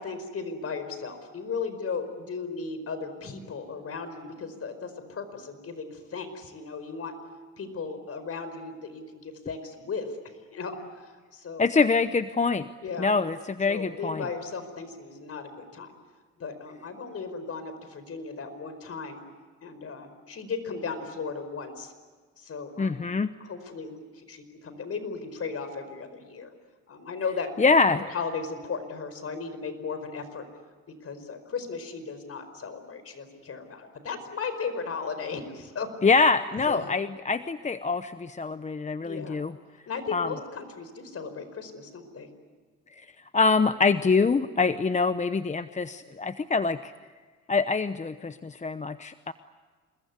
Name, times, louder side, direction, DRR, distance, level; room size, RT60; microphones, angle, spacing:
voice 1, 0.0-7.1 7.6-10.2 10.5-11.6 12.8-13.1 13.7-15.9 16.4-19.2 19.6-21.9 22.4-23.0 23.4-26.5 26.9-27.5 28.0-30.4 31.0-35.9 36.6-36.9 39.0-39.4 39.9-42.3, left 5 dB, 50° left, 10 dB, 4.8 m, -36 dB
voice 2, 11.6-12.7 13.0-14.2 22.8-23.3 27.6-28.1 36.0-39.5 40.1-40.3 42.9-46.9 47.5-49.3, left 4 dB, 25° left, 11 dB, 0.8 m, -25 dB
27.5 x 21.5 x 9.6 m, 1.5 s
cardioid pair, 90°, 30 cm